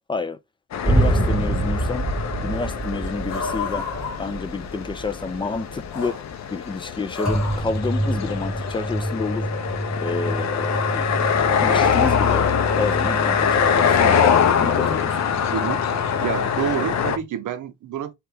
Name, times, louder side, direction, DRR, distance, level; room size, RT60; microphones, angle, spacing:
sound 1, 0.7-17.2, left 7 dB, 60° left, 0.6 m, -24 dB
voice 1, 0.8-2.1 2.4-3.9 4.2-6.2 6.5-9.5 10.0-11.1 11.6-12.5 12.8-15.3, left 4 dB, 15° left, 0.3 m, -29 dB
sound 2, 0.8-5.9 7.2-17.2, right 1 dB, ahead, 2.0 m, -28 dB
sound 3, 2.5-7.6, left 5 dB, 85° left, 0.9 m, -34 dB
voice 2, 15.5-15.8 16.2-18.1, right 10 dB, 75° right, 0.7 m, -28 dB
3.3 x 2.9 x 3.3 m
wide cardioid pair, 140°, 31 cm